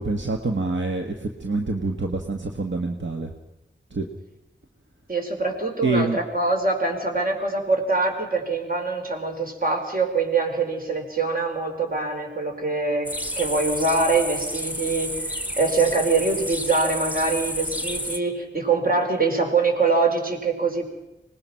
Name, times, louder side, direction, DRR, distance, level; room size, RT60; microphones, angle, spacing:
voice 1, 0.0-3.3 3.9-4.1 5.8-6.2, right 3 dB, 75° right, 3 dB, 1.6 m, -26 dB
voice 2, 5.1-15.1 15.6-20.9, right 3 dB, 50° right, 2 dB, 4.7 m, -24 dB
sound 1, 13.0-18.2, equal, 10° right, 1.4 m, -30 dB
25.0 x 20.0 x 5.8 m, 0.95 s
wide cardioid pair, 70°, 19 cm